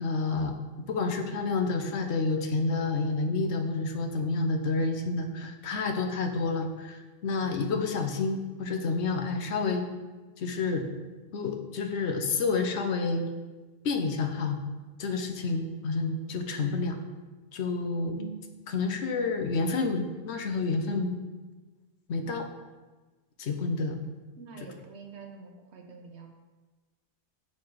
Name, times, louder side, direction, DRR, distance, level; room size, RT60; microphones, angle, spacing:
voice 1, 0.0-9.8 10.4-10.9 11.3-13.2 13.8-14.6 15.0-17.0 17.5-18.2 18.7-21.1 22.1-22.5 23.4-24.0 24.6-24.7, left 3 dB, 85° left, 5 dB, 1.0 m, -29 dB
voice 2, 18.1-18.6 24.4-26.3, right 5 dB, 80° right, 3 dB, 1.2 m, -45 dB
6.6 x 5.5 x 4.6 m, 1.3 s
omnidirectional pair, 1.1 m